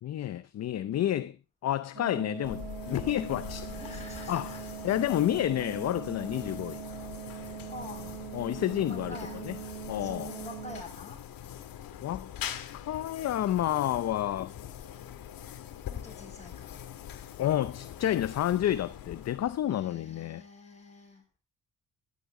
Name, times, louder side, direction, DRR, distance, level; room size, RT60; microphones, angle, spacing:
voice 1, 0.0-1.4 1.6-3.7 4.3-4.5 4.8-6.8 8.3-9.2 9.4-9.5 9.9-10.3 12.0-12.3 12.7-14.5 17.4-20.4, left 12 dB, 50° left, 0.6 m, -30 dB
sound 1, 1.9-10.8, right 9 dB, 25° right, 2.1 m, -42 dB
sound 2, 2.4-19.8, left 10 dB, 80° left, 1.8 m, -43 dB
voice 2, 3.6-4.8 7.2-8.3 8.9-9.5 9.9-11.2 15.9-16.8 19.6-21.4, left 2 dB, 20° left, 7.2 m, -47 dB
14.0 x 11.5 x 3.7 m
cardioid pair, 120°, 35 cm